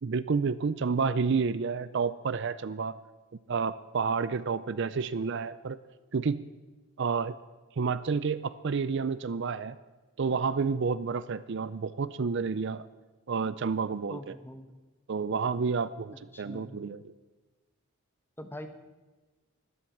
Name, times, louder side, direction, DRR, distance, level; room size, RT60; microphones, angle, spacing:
voice 1, 0.0-3.0 3.5-5.8 6.1-6.4 7.0-7.3 7.8-9.8 10.2-12.8 13.3-14.3 15.1-17.1, right 5 dB, 55° right, 15 dB, 0.4 m, -30 dB
voice 2, 14.1-14.7 16.3-16.8 18.4-18.7, left 1 dB, 10° left, 8 dB, 0.9 m, -43 dB
12.5 x 12.0 x 7.3 m, 1.2 s
head